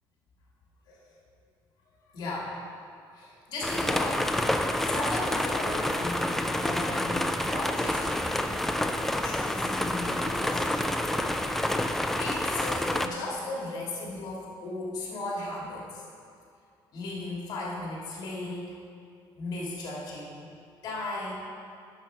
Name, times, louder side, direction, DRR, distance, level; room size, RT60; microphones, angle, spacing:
voice 1, 2.1-2.6 3.1-4.4 4.8-8.5 9.2-10.8 12.2-16.0 16.9-18.7 19.4-20.5 20.8-21.3, left 2 dB, 55° left, -4 dB, 2.2 m, -36 dB
sound 1, 3.6-13.1, left 1 dB, 5° left, 0.3 m, -28 dB
10.5 x 6.5 x 4.5 m, 2.4 s
cardioid pair, 165°, 8 cm